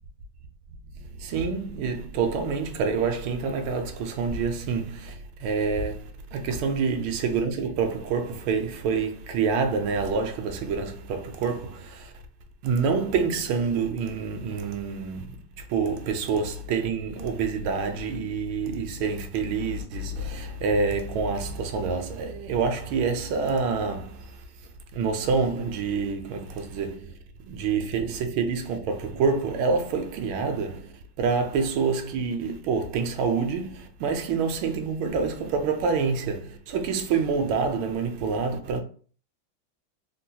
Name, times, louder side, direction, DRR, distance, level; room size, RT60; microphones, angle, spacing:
voice 1, 1.2-12.1 12.6-15.4 15.7-24.3 24.9-27.1 27.5-38.8, right 5 dB, 80° right, 1.4 m, -27 dB
3.6 x 2.2 x 2.7 m
omnidirectional pair, 2.2 m